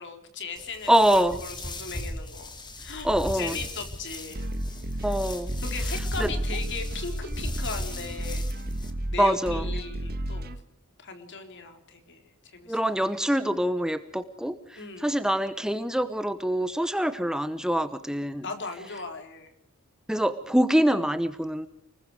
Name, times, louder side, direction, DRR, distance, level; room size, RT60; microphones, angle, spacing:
voice 1, 0.0-0.9 1.4-2.5 2.8-4.5 5.0-5.1 5.6-8.5 9.1-10.5 11.0-12.8 14.8-15.1 18.4-19.5, left 4 dB, 60° left, 6 dB, 4.0 m, -38 dB
sound 1, 0.6-8.9, left 1 dB, 20° left, 2.4 m, -38 dB
voice 2, 0.9-1.4 3.0-3.6 5.0-5.5 6.2-6.3 9.2-9.7 12.7-18.5 20.1-21.7, equal, 5° right, 11 dB, 1.0 m, -25 dB
sound 2, 4.3-10.6, right 1 dB, 45° right, 1.5 m, -32 dB
30.0 x 21.0 x 4.9 m, 0.68 s
head